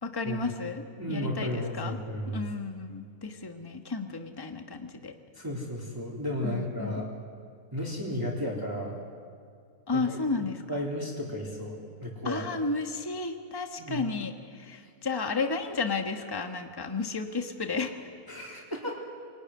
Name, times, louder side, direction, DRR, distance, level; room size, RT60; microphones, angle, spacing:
voice 1, 0.0-2.0 2.3-5.1 6.4-7.1 9.9-10.9 12.2-18.1, left 4 dB, 15° left, 5 dB, 1.4 m, -33 dB
voice 2, 1.0-2.4 5.3-7.1 7.7-9.0 9.9-10.2 10.7-12.4 13.8-14.1 18.3-19.0, left 1 dB, 15° right, -3 dB, 3.2 m, -33 dB
26.5 x 19.0 x 9.7 m, 2.2 s
omnidirectional pair, 1.6 m